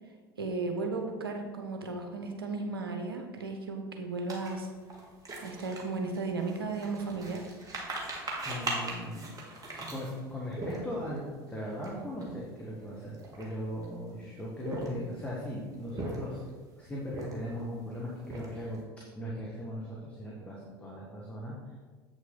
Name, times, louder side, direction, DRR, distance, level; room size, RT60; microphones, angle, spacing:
voice 1, 0.4-4.7 5.4-7.5, right 3 dB, 85° right, 4 dB, 1.0 m, -35 dB
sound 1, 4.3-11.2 11.7-11.9 12.1-12.4 13.0-13.9 14.5-15.2 15.7-16.5 17.0-17.6 18.0-18.8, right 2 dB, 30° right, 2.0 m, -39 dB
voice 2, 8.2-9.3 9.7-16.4 16.8-18.8 19.1-21.7, equal, 10° left, -5 dB, 1.7 m, -39 dB
8.0 x 6.2 x 3.9 m, 1.4 s
figure-of-eight pair, 70°, 12 cm